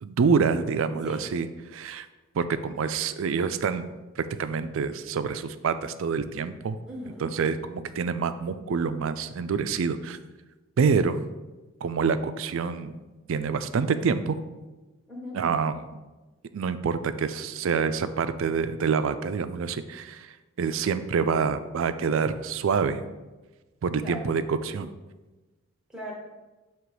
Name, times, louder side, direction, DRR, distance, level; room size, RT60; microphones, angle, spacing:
voice 1, 0.0-1.5 1.7-2.1 2.3-3.9 4.2-6.8 7.2-10.2 10.8-11.2 11.8-12.9 13.3-14.4 15.3-15.9 16.5-23.0 23.8-24.9, right 5 dB, 60° right, 12 dB, 0.3 m, -26 dB
voice 2, 6.9-7.3 15.1-15.5 24.0-24.3 25.9-26.1, equal, 5° right, -2 dB, 1.1 m, -38 dB
7.5 x 3.0 x 4.8 m, 1.2 s
head